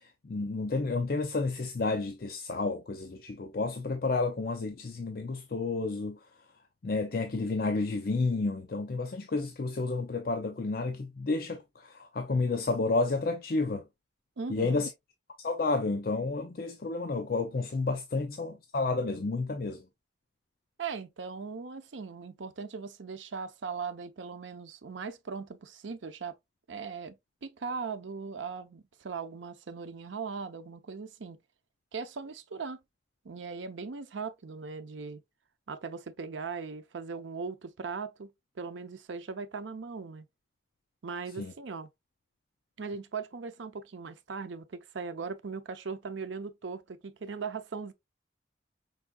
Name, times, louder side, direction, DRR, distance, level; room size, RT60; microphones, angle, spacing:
voice 1, 0.0-6.2 6.8-13.8 14.5-14.9 15.4-19.8 41.4-41.5, left 3 dB, 50° left, 0.5 m, -31 dB
voice 2, 14.4-14.8 20.8-26.4 26.7-31.4 31.9-32.8 33.2-35.2 35.7-38.3 38.6-40.3 41.0-41.9 42.8-47.9, right 5 dB, 90° right, 0.6 m, -39 dB
5.5 x 3.5 x 2.2 m
head